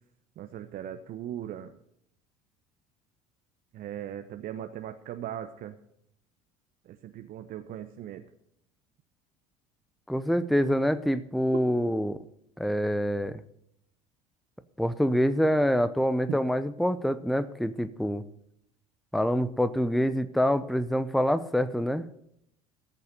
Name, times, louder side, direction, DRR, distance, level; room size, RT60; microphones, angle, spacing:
voice 1, 0.4-1.8 3.7-5.8 6.8-8.3 16.3-16.4, right 11 dB, 50° right, 8 dB, 0.9 m, -38 dB
voice 2, 10.1-12.2 12.6-13.4 14.8-18.2 19.1-22.0, equal, ahead, 13 dB, 0.8 m, -26 dB
14.5 x 6.9 x 8.1 m, 0.72 s
hypercardioid pair, 75°, 19 cm